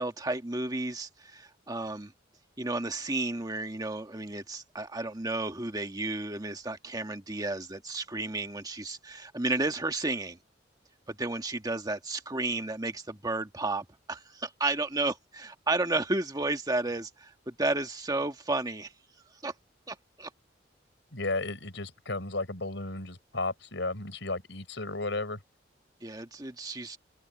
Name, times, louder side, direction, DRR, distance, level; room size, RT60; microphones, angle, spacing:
voice 1, 0.0-2.1 2.6-10.4 11.1-18.9 19.4-19.5 19.9-20.3 26.0-27.0, right 2 dB, 20° right, 1.5 m, -32 dB
voice 2, 21.1-25.4, left 2 dB, 70° left, 5.6 m, -34 dB
head